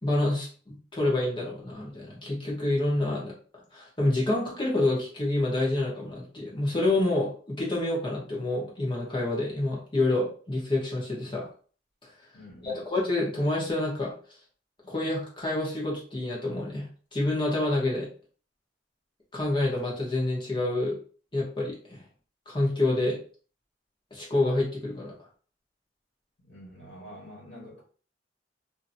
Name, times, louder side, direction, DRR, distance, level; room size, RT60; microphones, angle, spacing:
voice 1, 0.0-3.3 3.7-11.5 12.6-14.1 14.8-16.8 17.1-18.1 19.3-21.0 21.3-22.0 22.5-23.2 24.1-25.1, left 2 dB, 25° left, 1.1 m, -28 dB
voice 2, 12.3-12.8 26.4-27.8, equal, 70° left, 1.3 m, -47 dB
2.8 x 2.6 x 2.6 m
head